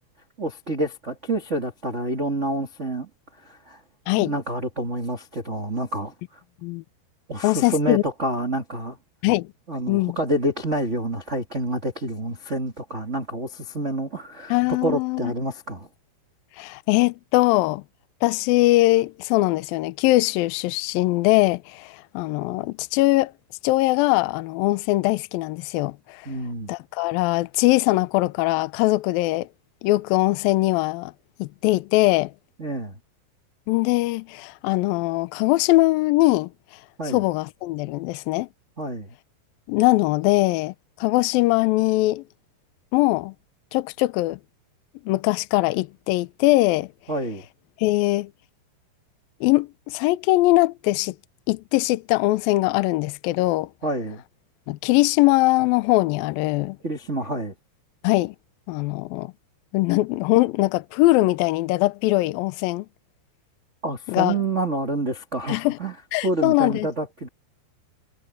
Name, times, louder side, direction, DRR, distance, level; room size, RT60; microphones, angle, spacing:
voice 1, 0.4-3.1 3.4-3.8 4.2-6.4 7.3-9.0 9.7-14.6 14.8-15.9 26.2-26.7 32.6-33.0 37.0-37.2 38.8-39.1 47.1-47.4 53.8-54.2 56.8-57.5 63.8-65.9 66.2-67.3, right 1 dB, 30° right, 1.4 m, -28 dB
voice 2, 7.4-8.0 9.2-9.5 9.9-10.2 14.5-15.3 16.6-17.8 18.2-23.3 23.6-26.2 26.7-29.5 29.8-31.1 31.4-32.3 33.7-36.5 37.1-38.5 39.7-40.7 41.0-42.2 42.9-43.3 43.7-44.4 45.1-46.9 47.8-48.3 49.4-51.2 51.5-53.7 54.7-56.8 58.0-58.4 58.7-59.3 59.7-62.9 64.1-64.4 65.5-65.8 66.1-66.9, left 19 dB, 85° left, 2.0 m, -21 dB
omnidirectional pair, 5.1 m